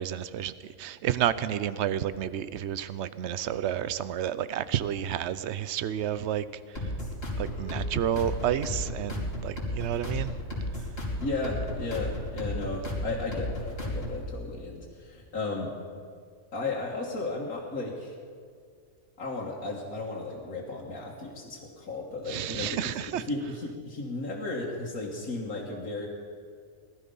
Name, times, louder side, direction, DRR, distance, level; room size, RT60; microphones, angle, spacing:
voice 1, 0.0-6.9 7.4-10.3 22.3-23.2, right 10 dB, 65° right, 15 dB, 0.8 m, -30 dB
sound 1, 6.8-14.3, left 1 dB, 45° left, 3.3 m, -34 dB
voice 2, 11.2-15.7 16.5-18.1 19.2-22.8 23.1-26.1, left 3 dB, 85° left, -5 dB, 2.0 m, -34 dB
19.0 x 12.5 x 5.5 m, 2.2 s
omnidirectional pair, 1.5 m